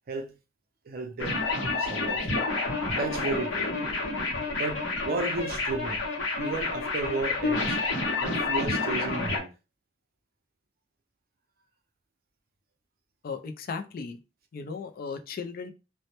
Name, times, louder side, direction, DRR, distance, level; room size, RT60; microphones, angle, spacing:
voice 1, 0.8-2.2 2.9-3.7 4.5-6.0 6.3-7.8 8.2-9.5, right 3 dB, 50° right, 0.5 m, -33 dB
sound 1, 1.2-9.4, left 3 dB, 85° left, 0.8 m, -29 dB
voice 2, 13.2-14.2 14.5-15.7, left 5 dB, 50° left, 0.3 m, -36 dB
2.1 x 2.1 x 2.8 m
head